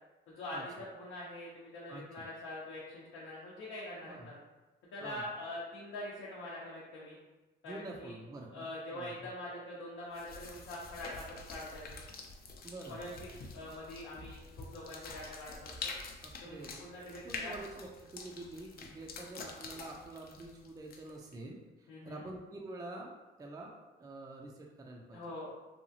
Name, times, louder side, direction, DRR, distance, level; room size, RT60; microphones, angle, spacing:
voice 1, 0.3-4.4 4.9-7.2 7.6-8.1 8.5-12.0 12.9-13.1 13.5-15.6 15.8-15.9 16.4-17.5 21.9-22.3 25.1-25.5, left 1 dB, 85° left, -7 dB, 0.7 m, -44 dB
voice 2, 1.9-2.3 4.1-4.3 5.0-5.3 7.6-9.1 12.6-13.0 16.2-16.8 17.2-25.2, right 2 dB, 20° right, 0 dB, 0.3 m, -47 dB
sound 1, 10.1-21.3, left 4 dB, 50° left, 0.4 m, -47 dB
2.8 x 2.3 x 2.6 m, 1.1 s
cardioid pair, 90°, 20 cm